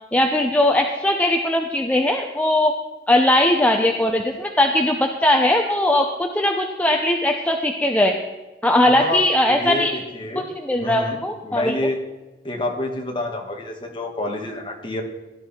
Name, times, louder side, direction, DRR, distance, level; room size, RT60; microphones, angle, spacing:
voice 1, 0.1-2.7 3.1-8.2 8.6-9.9 10.4-11.8, left 1 dB, 10° left, 2 dB, 0.9 m, -19 dB
voice 2, 8.9-9.2 9.5-10.5 10.8-11.2 11.4-12.0 12.4-15.0, left 1 dB, 30° left, 1 dB, 2.2 m, -28 dB
17.0 x 11.5 x 4.5 m, 1.2 s
head